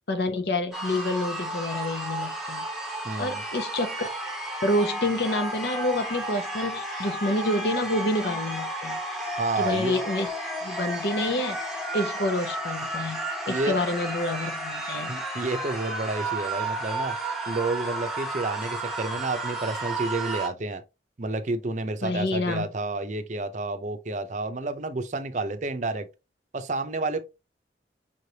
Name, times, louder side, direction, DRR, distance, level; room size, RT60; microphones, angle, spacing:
voice 1, 0.1-2.7 3.2-4.1 4.6-9.0 9.6-10.3 10.6-11.6 11.9-15.2 22.0-22.7, left 1 dB, 65° left, 0.9 m, -28 dB
sound 1, 0.7-20.5, right 1 dB, ahead, 1.1 m, -32 dB
voice 2, 3.0-3.4 9.4-10.0 13.5-13.8 15.1-17.2 17.5-20.8 21.2-26.1 26.5-27.2, right 2 dB, 45° right, 0.6 m, -30 dB
5.5 x 3.3 x 2.7 m
head